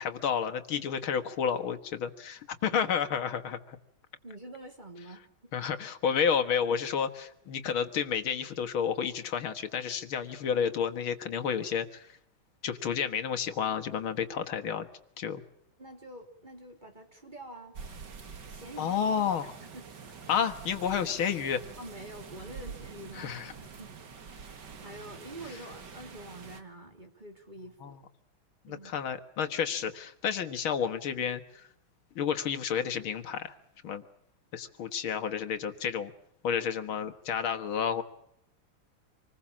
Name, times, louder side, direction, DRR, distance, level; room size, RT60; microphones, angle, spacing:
voice 1, 0.0-3.8 5.5-12.1 12.6-14.9 15.2-15.4 18.8-19.5 20.3-21.6 23.2-23.5 27.8-27.9 28.7-31.7 32.2-33.6 33.8-34.0 34.5-36.1 36.4-38.0, left 7 dB, 75° left, 7 dB, 2.2 m, -31 dB
voice 2, 4.2-5.5 15.8-17.8 18.4-19.0 19.7-19.8 21.8-23.9 24.5-28.0 28.7-29.1, right 1 dB, 20° right, 4 dB, 3.2 m, -47 dB
sound 1, 17.7-26.6, right 5 dB, 55° right, 2.4 m, -46 dB
26.5 x 20.5 x 7.3 m, 0.74 s
omnidirectional pair, 2.3 m